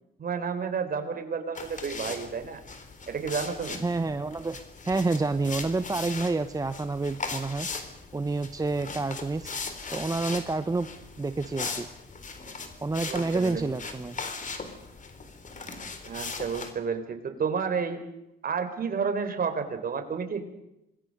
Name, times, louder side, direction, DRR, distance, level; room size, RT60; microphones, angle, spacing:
voice 1, 0.2-2.6 3.1-3.8 13.1-13.6 16.0-18.0 18.4-20.4, right 6 dB, 50° right, 7 dB, 4.1 m, -31 dB
sound 1, 1.5-16.7, left 4 dB, 40° left, 3.8 m, -39 dB
voice 2, 3.8-4.6 4.8-7.7 8.1-10.9 11.2-11.9 12.8-14.2, right 3 dB, 20° right, 10 dB, 0.9 m, -29 dB
27.0 x 20.5 x 6.7 m, 0.86 s
cardioid pair, 90°, 20 cm